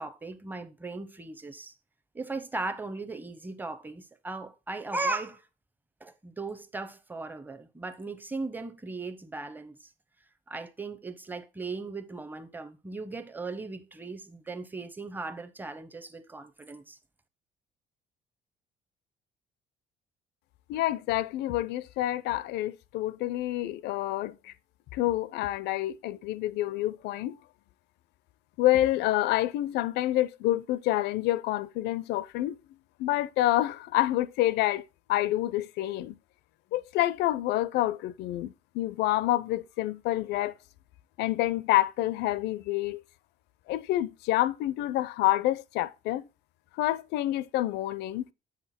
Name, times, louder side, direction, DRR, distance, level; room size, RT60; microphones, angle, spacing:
voice 1, 0.0-1.7 2.1-5.4 6.0-9.8 10.5-17.0, right 3 dB, 10° right, 0.8 m, -37 dB
voice 2, 20.7-24.5 24.9-27.4 28.6-32.6 33.0-34.8 35.1-36.2 36.7-40.5 41.2-43.0 43.7-46.3 46.8-48.3, left 15 dB, 85° left, 0.5 m, -28 dB
7.8 x 5.8 x 4.3 m
cardioid pair, 110°, 17 cm